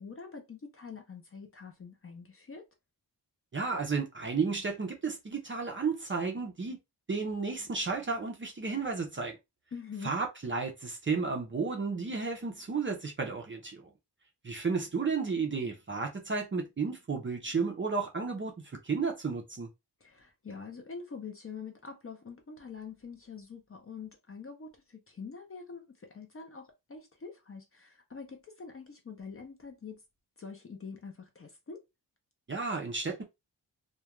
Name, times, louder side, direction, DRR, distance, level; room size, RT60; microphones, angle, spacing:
voice 1, 0.0-2.6 9.7-10.1 20.0-30.0 30.4-31.8, left 5 dB, 30° left, 0.5 m, -45 dB
voice 2, 3.5-6.8 7.1-9.4 10.0-13.9 14.4-19.7 32.5-33.2, right 4 dB, 30° right, 0.4 m, -33 dB
2.3 x 2.2 x 2.9 m
wide cardioid pair, 165°, 43 cm